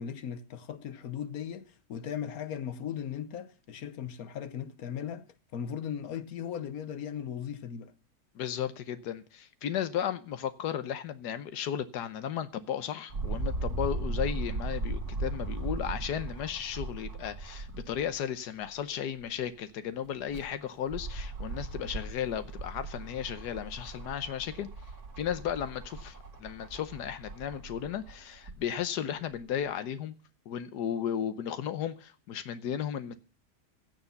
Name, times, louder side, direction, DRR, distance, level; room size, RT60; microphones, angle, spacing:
voice 1, 0.0-7.9, left 8 dB, 65° left, 1.3 m, -38 dB
voice 2, 8.3-24.7 25.2-30.1 30.5-33.1, left 9 dB, 90° left, 1.5 m, -35 dB
sound 1, 13.1-18.2 18.6-18.7 20.0-28.6 29.4-29.5, right 2 dB, 65° right, 3.1 m, -37 dB
16.5 x 6.7 x 6.9 m
omnidirectional pair, 1.7 m